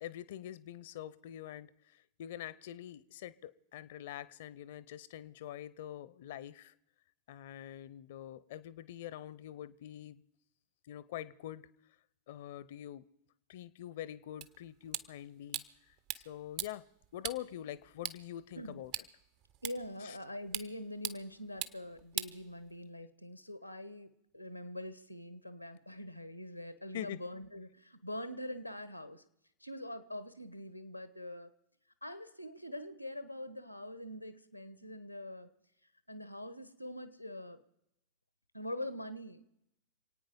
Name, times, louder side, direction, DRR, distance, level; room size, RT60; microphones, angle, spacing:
voice 1, 0.0-6.7 7.3-10.2 10.9-11.7 12.3-13.0 13.5-16.8 17.1-18.9 20.0-20.2 26.9-27.2, left 11 dB, 55° left, 19 dB, 0.8 m, -45 dB
sound 1, 14.4-23.0, right 11 dB, 45° right, 0.9 m, -44 dB
voice 2, 19.6-29.2 29.6-31.5 32.0-35.5 36.1-37.6 38.5-39.4, left 1 dB, 90° left, 13 dB, 1.2 m, -44 dB
27.5 x 9.3 x 5.4 m, 0.79 s
figure-of-eight pair, 90°, 0 cm